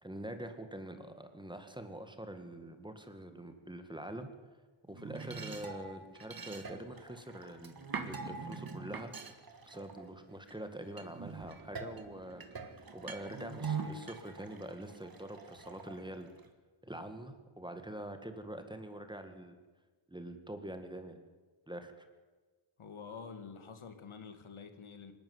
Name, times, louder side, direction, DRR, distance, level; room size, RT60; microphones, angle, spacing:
voice 1, 0.0-4.3 4.9-9.1 9.7-12.4 12.9-16.3 16.8-19.6 20.1-21.2 21.7-22.1, right 1 dB, 10° right, 7 dB, 1.9 m, -45 dB
sound 1, 4.9-10.5 11.0-16.5, right 5 dB, 45° right, 2.0 m, -44 dB
voice 2, 22.8-25.1, left 5 dB, 75° left, 8 dB, 2.2 m, -48 dB
26.0 x 12.0 x 9.6 m, 1.4 s
wide cardioid pair, 180°, 49 cm